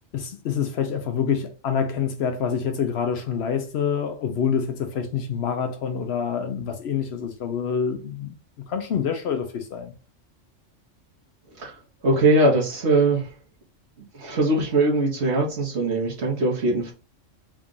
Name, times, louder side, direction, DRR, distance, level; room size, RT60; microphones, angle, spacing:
voice 1, 0.1-8.4 8.7-9.9, left 7 dB, 65° left, 0.8 m, -26 dB
voice 2, 12.0-13.3 14.2-16.9, right 2 dB, 60° right, 1.3 m, -21 dB
3.6 x 2.4 x 3.8 m
omnidirectional pair, 1.3 m